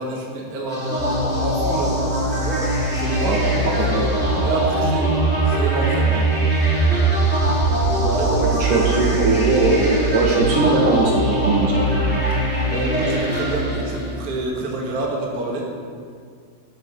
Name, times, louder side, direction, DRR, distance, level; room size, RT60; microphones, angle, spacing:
voice 1, 0.0-4.1 4.4-5.1 5.4-6.2 7.9-8.9 12.2-15.7, right 2 dB, 35° right, -3 dB, 1.6 m, -28 dB
sound 1, 0.7-14.4, right 2 dB, 5° right, 1.8 m, -21 dB
voice 2, 3.2-4.6 8.4-11.8, right 3 dB, 65° right, -1 dB, 2.5 m, -20 dB
13.5 x 7.9 x 6.3 m, 2.1 s
omnidirectional pair, 4.5 m